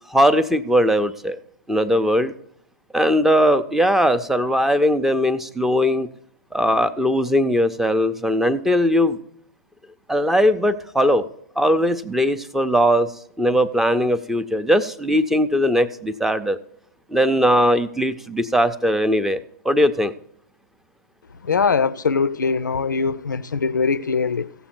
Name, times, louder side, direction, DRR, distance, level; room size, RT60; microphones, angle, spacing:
voice 1, 0.1-1.4 1.7-2.3 2.9-6.1 6.5-9.2 10.1-11.3 11.6-13.1 13.4-16.6 17.1-20.1, equal, 5° right, 0.5 m, -19 dB
voice 2, 21.4-24.5, left 5 dB, 85° left, 0.4 m, -22 dB
15.5 x 7.1 x 4.4 m
figure-of-eight pair, 110°, 10 cm